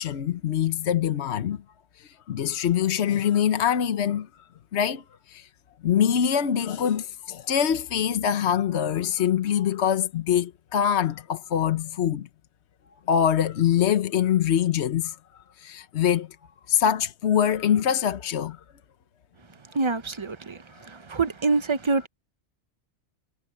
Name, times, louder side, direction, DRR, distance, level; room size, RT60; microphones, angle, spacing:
voice 1, 0.0-1.6 2.0-4.3 4.7-5.0 5.3-5.5 5.8-12.3 13.1-15.2 15.6-16.3 16.7-18.6, left 9 dB, 70° left, 1.1 m, -24 dB
voice 2, 19.7-22.1, right 4 dB, 30° right, 0.6 m, -26 dB
omnidirectional pair, 1.2 m